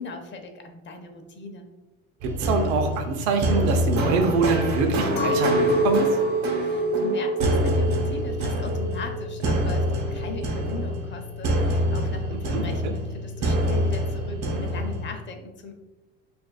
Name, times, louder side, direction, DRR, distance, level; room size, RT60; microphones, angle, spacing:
voice 1, 0.0-1.7 6.6-15.7, left 3 dB, 35° left, 5 dB, 0.7 m, -38 dB
sound 1, 2.2-15.1, right 1 dB, 55° right, 1.1 m, -26 dB
voice 2, 2.2-6.2 12.3-12.9, right 4 dB, 80° right, 5 dB, 0.7 m, -25 dB
Chink clink, 5.2-10.6, equal, 75° left, 0.5 m, -26 dB
6.1 x 2.6 x 2.3 m, 1.1 s
supercardioid pair, 85°, 32 cm